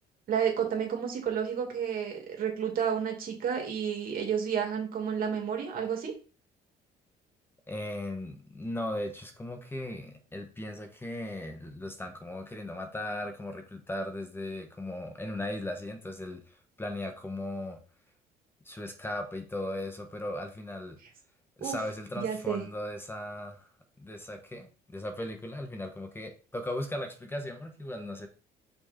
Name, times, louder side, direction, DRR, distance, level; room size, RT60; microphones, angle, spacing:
voice 1, 0.3-6.1 21.6-21.8 22.2-22.6, right 7 dB, 60° right, 2 dB, 2.4 m, -31 dB
voice 2, 7.7-17.8 18.6-21.0 21.6-23.7 24.0-28.3, left 1 dB, 15° left, 5 dB, 1.1 m, -37 dB
6.1 x 4.5 x 4.4 m, 0.36 s
cardioid pair, 110°, 17 cm